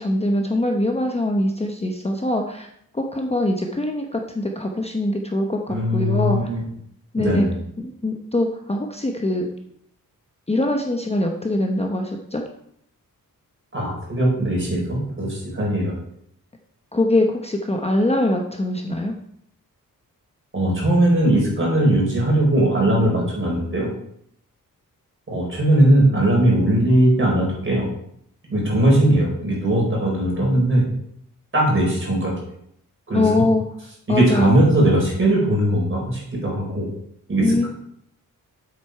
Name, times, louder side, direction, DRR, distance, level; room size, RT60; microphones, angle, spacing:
voice 1, 0.0-2.7 2.9-6.5 7.1-7.5 7.8-9.5 10.5-12.4 16.9-19.1 33.1-33.6 34.1-34.6 37.4-37.6, left 1 dB, 20° left, 2 dB, 0.8 m, -23 dB
voice 2, 5.7-6.6 7.2-7.5 13.7-15.9 20.5-23.9 25.3-27.9 28.5-30.8 31.5-32.3 33.1-33.2 34.1-36.8 37.3-37.7, right 1 dB, 35° right, -3 dB, 4.4 m, -19 dB
8.1 x 7.4 x 4.7 m, 0.71 s
wide cardioid pair, 135°, 34 cm